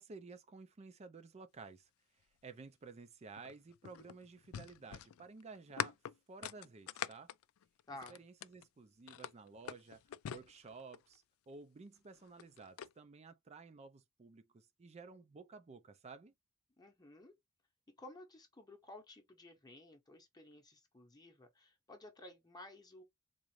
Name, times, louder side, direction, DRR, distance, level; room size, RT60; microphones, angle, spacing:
voice 1, 0.0-1.9 2.4-6.0 6.3-7.3 8.1-10.0 10.3-16.3, right 4 dB, 30° right, 0.4 m, -53 dB
sound 1, 3.4-8.7 9.1-11.2 12.1-12.9, left 10 dB, 70° left, 0.3 m, -44 dB
voice 2, 7.9-8.2 16.8-17.3 18.0-23.0, left 1 dB, 20° left, 0.8 m, -54 dB
3.8 x 2.4 x 3.1 m
head